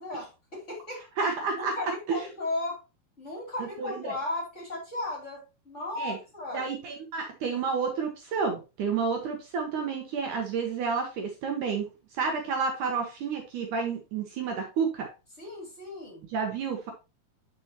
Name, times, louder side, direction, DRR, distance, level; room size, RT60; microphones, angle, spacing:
voice 1, 0.0-1.0 1.5-2.8 3.2-6.6 15.4-16.3, left 2 dB, 20° left, -2 dB, 2.8 m, -36 dB
voice 2, 1.2-1.8 2.1-2.3 3.6-4.2 6.0-6.2 6.5-15.1 16.3-16.9, right 5 dB, 65° right, 3 dB, 2.3 m, -30 dB
9.7 x 5.9 x 2.9 m, 0.28 s
omnidirectional pair, 4.2 m